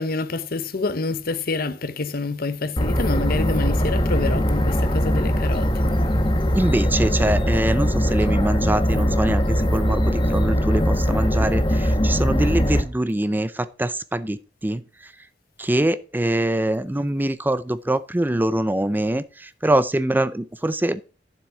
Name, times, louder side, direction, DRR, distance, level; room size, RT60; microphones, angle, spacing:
voice 1, 0.0-5.9, left 3 dB, 55° left, 0.9 m, -27 dB
sound 1, 2.8-12.8, equal, 30° left, 1.3 m, -21 dB
voice 2, 6.5-14.4 14.6-14.8 15.6-21.0, right 1 dB, 10° right, 0.4 m, -23 dB
9.8 x 7.4 x 4.6 m
head